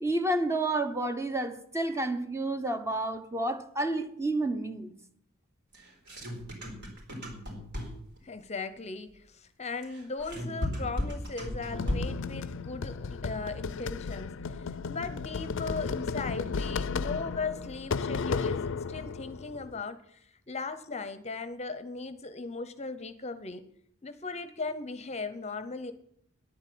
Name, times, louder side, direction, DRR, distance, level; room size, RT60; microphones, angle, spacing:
voice 1, 0.0-4.9, right 2 dB, 15° right, 1.0 m, -30 dB
sound 1, 5.7-8.2 9.8-12.3, left 1 dB, 55° right, 4.1 m, -35 dB
voice 2, 8.2-23.7 24.0-25.9, left 3 dB, 30° left, 0.8 m, -38 dB
sound 2, 11.7-19.8, left 5 dB, 60° left, 0.5 m, -34 dB
10.5 x 8.6 x 8.6 m
head